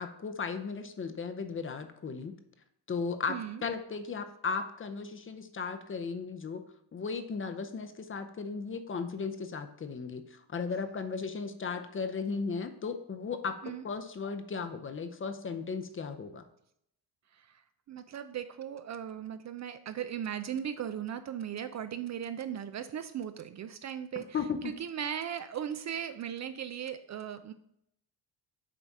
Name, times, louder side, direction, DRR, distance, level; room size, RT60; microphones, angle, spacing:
voice 1, 0.0-2.3 2.9-3.3 3.6-6.6 6.9-16.4 24.3-24.7, left 5 dB, 30° left, 8 dB, 0.7 m, -36 dB
voice 2, 3.3-3.6 13.6-13.8 17.3-17.6 17.9-24.3 24.6-27.5, right 9 dB, 40° right, 10 dB, 0.4 m, -37 dB
7.4 x 4.0 x 4.7 m, 0.73 s
cardioid pair, 100°, 43 cm